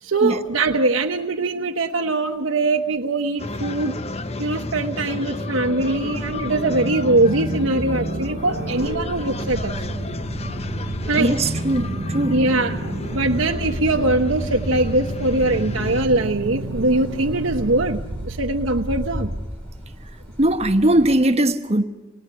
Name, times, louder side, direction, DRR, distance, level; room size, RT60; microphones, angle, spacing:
voice 1, 0.0-4.0 4.4-9.8 11.1-11.4 12.3-19.4, right 2 dB, 90° right, 1.1 m, -22 dB
sound 1, 3.4-16.1, left 2 dB, 30° left, 0.8 m, -31 dB
sound 2, 5.5-19.2, right 3 dB, 75° right, 0.8 m, -32 dB
sound 3, 8.4-21.2, equal, 10° left, 5.2 m, -37 dB
voice 2, 11.2-12.3 20.4-21.8, right 1 dB, 30° right, 1.2 m, -19 dB
27.5 x 19.0 x 9.8 m
head